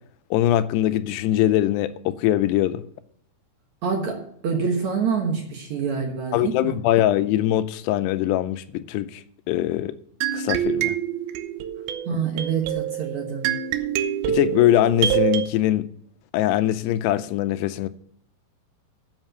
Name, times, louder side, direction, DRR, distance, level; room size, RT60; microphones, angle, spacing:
voice 1, 0.3-2.8 6.3-9.9 10.3-10.9 12.1-12.2 14.3-15.9 16.3-17.9, left 13 dB, 90° left, 2.7 m, -22 dB
voice 2, 3.8-6.8 12.1-13.5, right 6 dB, 60° right, 2.1 m, -26 dB
sound 1, 10.2-15.5, right 11 dB, 80° right, 2.4 m, -26 dB
7.9 x 7.4 x 7.7 m
omnidirectional pair, 4.7 m